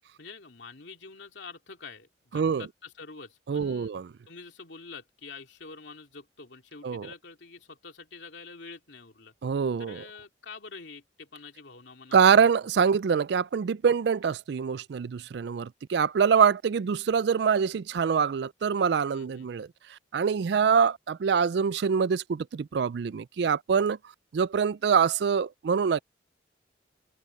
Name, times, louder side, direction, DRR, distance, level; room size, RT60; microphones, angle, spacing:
voice 1, 0.2-3.9 4.3-9.3 9.8-12.5 19.1-19.7, left 4 dB, 70° left, 2.8 m, -46 dB
voice 2, 2.3-2.7 3.5-4.1 6.8-7.1 9.4-10.0 12.1-19.7 20.1-24.0 24.3-26.0, right 6 dB, 60° right, 0.4 m, -24 dB
open air
head